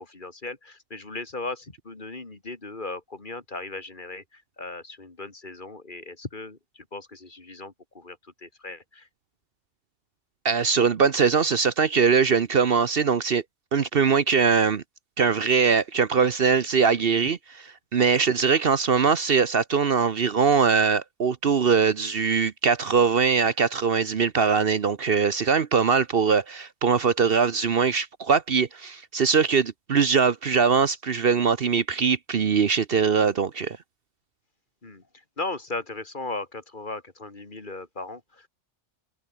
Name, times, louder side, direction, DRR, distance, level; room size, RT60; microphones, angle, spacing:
voice 1, 0.0-9.1 34.8-38.5, left 2 dB, 40° left, 2.5 m, -37 dB
voice 2, 10.4-13.4 13.7-14.8 15.2-17.4 17.9-33.8, right 6 dB, 55° right, 1.1 m, -22 dB
omnidirectional pair, 1.2 m